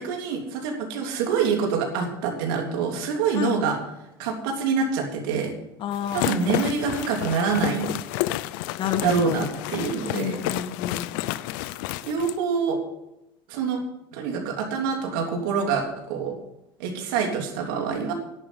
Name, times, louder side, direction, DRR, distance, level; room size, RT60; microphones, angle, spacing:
voice 1, 0.0-3.8 4.2-5.5 6.1-7.9 9.0-10.4 12.0-12.8 13.5-13.8 14.1-16.3 16.8-18.1, right 5 dB, 75° right, 2 dB, 3.3 m, -26 dB
voice 2, 5.8-6.6 8.8-9.4 10.1-11.1, left 9 dB, 50° left, 9 dB, 1.5 m, -29 dB
sound 1, 5.9-12.4, left 16 dB, 75° left, 0.6 m, -30 dB
11.0 x 8.8 x 8.2 m, 0.88 s
supercardioid pair, 95°, 11 cm